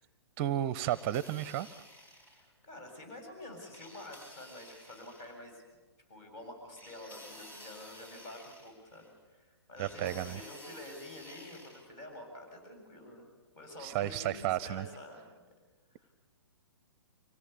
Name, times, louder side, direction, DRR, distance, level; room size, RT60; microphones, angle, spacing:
voice 1, 0.4-1.7 9.8-10.4 13.8-14.9, right 12 dB, 30° right, 18 dB, 0.6 m, -32 dB
sound 1, 0.8-2.5 3.7-5.4 6.8-9.1 9.8-11.9, equal, 15° left, 3.6 m, -53 dB
voice 2, 2.3-5.6 6.1-13.3 13.6-15.4 15.9-16.1, left 1 dB, 35° left, 3 dB, 7.6 m, -48 dB
24.5 x 17.5 x 8.5 m, 1.3 s
figure-of-eight pair, 125°, 14 cm